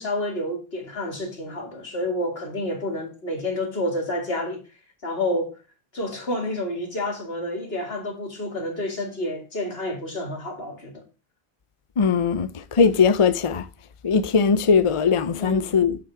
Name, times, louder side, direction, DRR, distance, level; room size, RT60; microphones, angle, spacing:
voice 1, 0.0-4.6 5.0-5.5 5.9-11.0 15.4-15.8, left 1 dB, 70° left, 2.8 m, -29 dB
voice 2, 12.0-13.6 14.0-16.0, left 5 dB, 40° left, 0.5 m, -20 dB
8.9 x 7.1 x 4.8 m
omnidirectional pair, 1.1 m